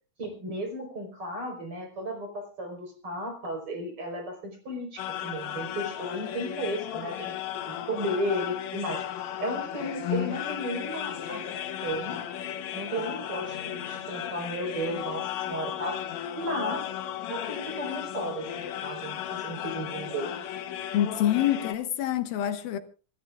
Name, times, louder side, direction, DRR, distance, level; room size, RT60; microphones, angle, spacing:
voice 1, 0.2-7.4 7.6-9.0 9.4-11.5 11.8-12.2 12.7-16.0 16.3-16.9 17.3-20.3, equal, 40° right, 5.6 m, -34 dB
sound 1, 5.0-21.8, left 10 dB, 60° left, 2.1 m, -35 dB
voice 2, 10.0-10.4 20.9-22.8, left 11 dB, 90° left, 3.2 m, -26 dB
26.5 x 16.5 x 2.5 m
omnidirectional pair, 4.1 m